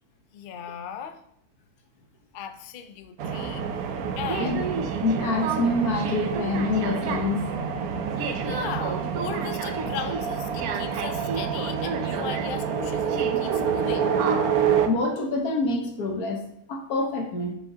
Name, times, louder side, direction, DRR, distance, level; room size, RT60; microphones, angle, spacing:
voice 1, 0.3-1.2 2.3-3.6 4.2-4.6 8.4-14.1, left 8 dB, 55° left, 8 dB, 0.6 m, -37 dB
sound 1, 3.2-14.9, right 7 dB, 80° right, 1.2 m, -27 dB
voice 2, 5.0-7.5 14.9-16.4 16.7-17.5, left 2 dB, 90° left, 3 dB, 1.7 m, -26 dB
7.6 x 7.6 x 2.8 m, 0.77 s
omnidirectional pair, 1.5 m